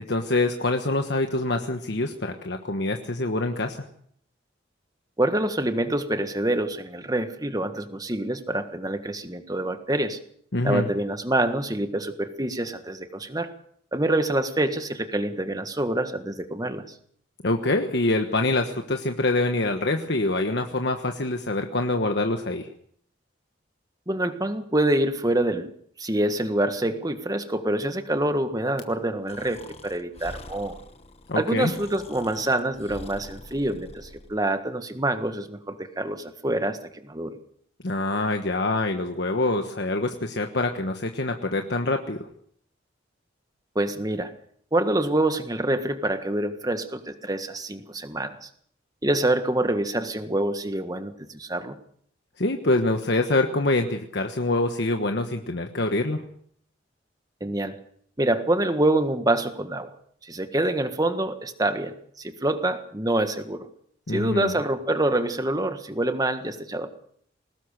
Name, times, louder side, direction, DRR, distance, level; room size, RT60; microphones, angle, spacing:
voice 1, 0.0-3.8 10.5-10.9 17.4-22.7 31.3-31.7 37.8-42.3 52.4-56.2 64.1-64.5, left 2 dB, 60° left, 5 dB, 1.3 m, -25 dB
voice 2, 5.2-10.2 10.6-13.5 13.9-16.8 24.1-25.7 26.0-30.8 31.3-37.4 43.7-44.3 44.7-48.5 49.0-51.8 57.4-57.8 58.2-59.9 60.2-63.7 64.1-66.9, right 1 dB, 20° right, 9 dB, 1.6 m, -26 dB
Breathing, 29.3-34.4, left 2 dB, 30° left, 1.4 m, -45 dB
21.5 x 18.5 x 6.7 m, 0.64 s
head